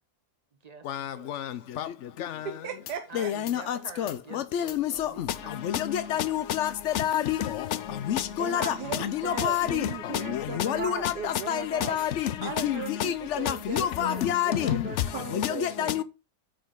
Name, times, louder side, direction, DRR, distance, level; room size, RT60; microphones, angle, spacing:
voice 1, 0.5-1.7 3.1-6.4, right 4 dB, 30° right, 0.8 m, -48 dB
voice 2, 2.6-3.3 8.4-12.0 12.4-16.0, right 7 dB, 85° right, 1.5 m, -37 dB
voice 3, 3.2-3.6 4.0-4.1 4.5-5.1 5.9-6.7 7.0-7.4 8.1-8.7 9.3-9.8 10.6-11.1 11.5-11.6 11.9-12.1 12.6-12.7 13.0-13.1 13.7-14.8 15.4-16.0, left 11 dB, 70° left, 0.7 m, -27 dB
sound 1, 4.7-14.0, equal, 85° left, 3.2 m, -56 dB
sound 2, 7.8-11.0, left 7 dB, 50° left, 1.6 m, -53 dB
8.7 x 5.1 x 3.7 m
omnidirectional pair, 1.8 m